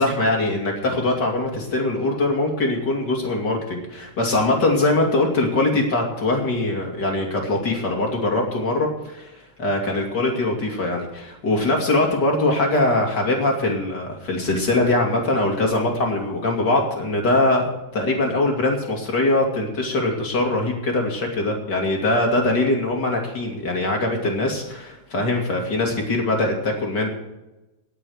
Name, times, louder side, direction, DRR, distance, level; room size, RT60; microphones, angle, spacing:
voice 1, 0.0-27.1, left 2 dB, 30° left, 1 dB, 2.2 m, -22 dB
18.5 x 7.0 x 6.4 m, 1.0 s
omnidirectional pair, 4.8 m